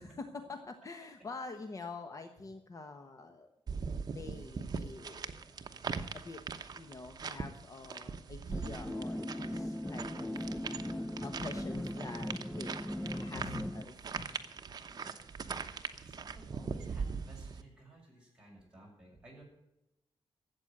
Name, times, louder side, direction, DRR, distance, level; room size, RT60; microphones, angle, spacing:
voice 1, 0.0-3.5 4.1-5.3 6.1-6.4 6.7-10.8 11.2-12.3 12.6-12.9 13.2-14.3, left 3 dB, 35° left, 7 dB, 1.1 m, -46 dB
sound 1, 3.7-17.6, right 5 dB, 45° right, 1.0 m, -41 dB
sound 2, 8.5-13.8, left 1 dB, 5° left, 0.4 m, -39 dB
sound 3, 10.4-11.3 12.7-14.0, left 2 dB, 70° left, 2.9 m, -50 dB
voice 2, 14.9-19.4, right 1 dB, 10° right, -3 dB, 6.9 m, -57 dB
13.5 x 8.1 x 9.0 m, 0.88 s
wide cardioid pair, 130°, 9 cm